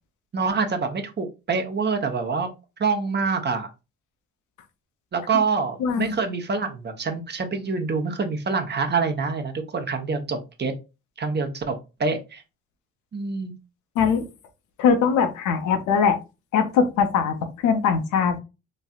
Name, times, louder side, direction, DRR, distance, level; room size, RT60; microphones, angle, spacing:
voice 1, 0.3-2.5 2.8-3.7 5.1-10.7 11.2-12.4 13.1-13.5, right 4 dB, 35° right, 0.8 m, -26 dB
voice 2, 5.8-6.1 14.0-14.3 14.8-16.2 16.5-17.4 17.6-18.4, left 6 dB, 85° left, 0.6 m, -21 dB
3.1 x 2.6 x 2.3 m
supercardioid pair, 60°, 29 cm